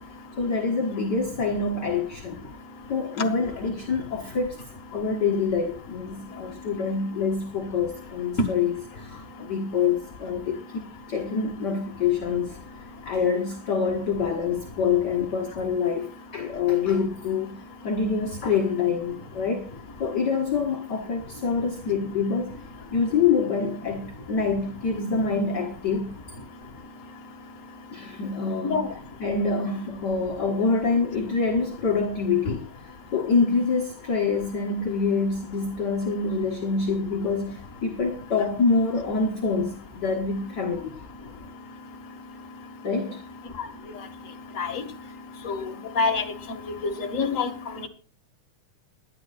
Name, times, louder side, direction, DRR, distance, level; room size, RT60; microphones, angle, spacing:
voice 1, 0.4-2.4 2.9-4.6 4.9-12.6 13.0-17.6 17.8-19.7 20.0-22.6 22.9-26.1 27.9-28.8 29.2-32.7 33.1-41.0 42.8-43.2, left 5 dB, 45° left, 1.5 m, -26 dB
voice 2, 45.5-46.2 46.8-47.5, left 4 dB, 30° left, 1.7 m, -26 dB
23.0 x 10.5 x 2.5 m
omnidirectional pair, 3.6 m